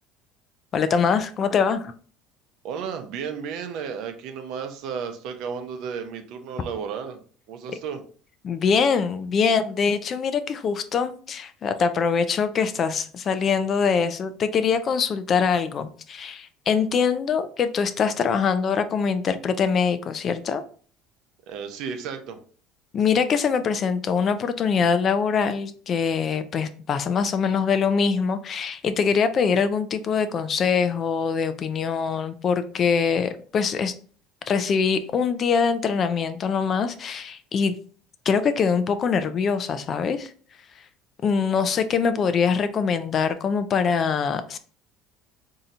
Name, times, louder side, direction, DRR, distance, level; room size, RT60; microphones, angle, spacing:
voice 1, 0.7-1.9 8.4-20.6 22.9-33.9 34.5-37.8 38.3-40.3 41.2-44.6, left 6 dB, 40° left, 11 dB, 0.4 m, -23 dB
voice 2, 2.6-7.2 7.5-8.0 21.5-22.4, right 6 dB, 65° right, 6 dB, 0.6 m, -33 dB
4.1 x 2.7 x 2.5 m, 0.43 s
supercardioid pair, 100°, 0 cm